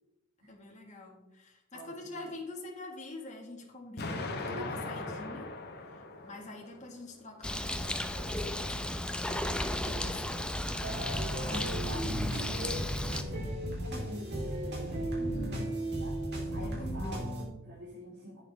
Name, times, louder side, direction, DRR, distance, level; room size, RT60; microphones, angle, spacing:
voice 1, 0.5-5.4 5.9-10.4 10.7-11.0 15.2-15.6 16.6-16.9, left 2 dB, 35° left, -1 dB, 1.8 m, -46 dB
voice 2, 1.7-2.3 4.1-5.3 9.4-10.0 11.1-14.8 15.5-16.2 16.5-18.4, left 1 dB, 75° right, -9 dB, 3.5 m, -46 dB
Explosion, 4.0-7.0, left 2 dB, 50° left, 1.3 m, -39 dB
Bird, 7.4-13.2, left 1 dB, 5° left, 0.6 m, -34 dB
sound 1, 10.8-17.4, right 1 dB, 55° right, 3.4 m, -35 dB
10.5 x 8.8 x 3.5 m, 0.97 s
head